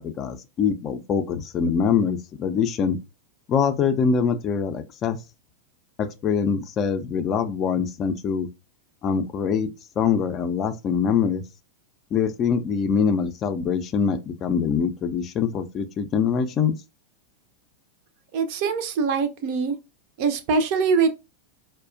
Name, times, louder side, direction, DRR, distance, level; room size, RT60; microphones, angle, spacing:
voice 1, 0.0-3.0 3.5-5.2 6.0-8.5 9.0-9.7 10.0-11.4 12.1-16.7, left 6 dB, 30° left, 0.4 m, -24 dB
voice 2, 18.3-19.8 20.2-21.1, right 5 dB, 45° right, 0.5 m, -23 dB
4.7 x 2.2 x 2.5 m
figure-of-eight pair, 90°, 0 cm